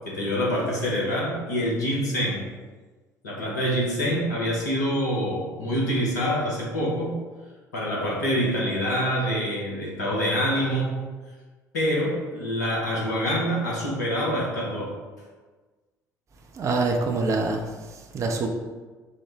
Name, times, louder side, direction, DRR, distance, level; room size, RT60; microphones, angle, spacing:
voice 1, 0.1-2.5 3.2-7.2 7.7-11.0 11.7-15.0, equal, 75° left, -4 dB, 0.8 m, -26 dB
voice 2, 16.5-18.5, right 3 dB, 35° right, 2 dB, 0.5 m, -26 dB
4.5 x 2.1 x 3.4 m, 1.3 s
figure-of-eight pair, 55°, 9 cm